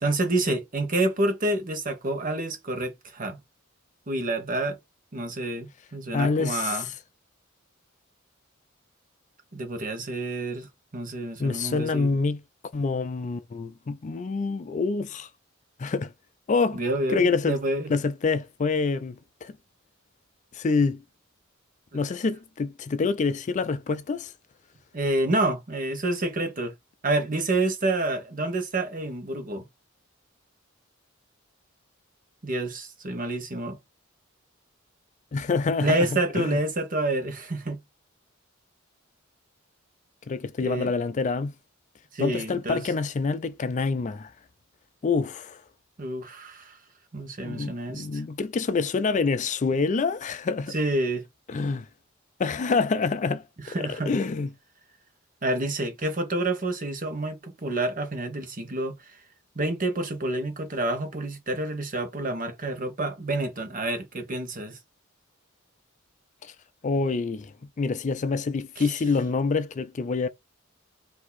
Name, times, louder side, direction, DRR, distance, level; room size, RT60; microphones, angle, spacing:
voice 1, 0.0-3.4 4.1-4.8 5.1-6.9 9.5-12.1 16.7-17.9 24.9-26.7 27.0-29.7 32.4-33.8 35.8-37.8 40.6-40.9 42.1-42.8 46.0-46.8 47.1-48.2 50.7-51.2 53.7-54.1 55.4-58.9 59.5-64.8 68.8-68.9, right 2 dB, 40° right, 1.2 m, -28 dB
voice 2, 6.1-6.9 11.4-12.4 12.7-15.3 15.8-16.1 16.5-16.8 17.1-17.6 17.9-19.6 20.5-21.0 21.9-24.3 35.3-36.6 40.3-41.5 42.2-44.3 45.0-45.6 47.4-50.7 51.5-51.9 52.4-54.5 66.4-66.5 66.8-70.3, left 4 dB, 35° left, 0.4 m, -26 dB
4.6 x 2.8 x 4.1 m
head